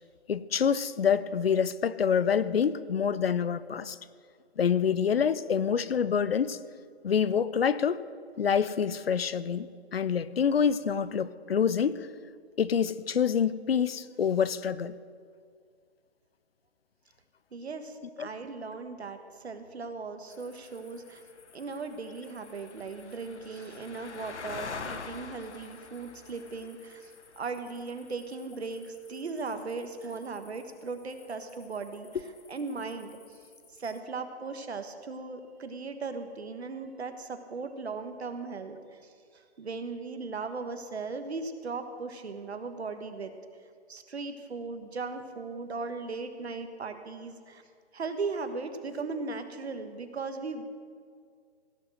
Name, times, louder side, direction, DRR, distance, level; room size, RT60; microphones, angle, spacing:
voice 1, 0.3-4.0 4.6-6.6 7.0-8.0 8.4-12.1 12.6-15.0 18.2-18.3, left 7 dB, 60° left, 16 dB, 0.6 m, -26 dB
voice 2, 17.5-21.2 21.5-32.2 32.5-33.4 33.7-43.3 43.9-47.6 47.9-50.6, right 4 dB, 70° right, 8 dB, 1.5 m, -38 dB
sound 1, 20.3-34.0, left 5 dB, 90° left, 1.2 m, -47 dB
16.5 x 6.4 x 7.8 m, 2.1 s
hypercardioid pair, 175°, 33 cm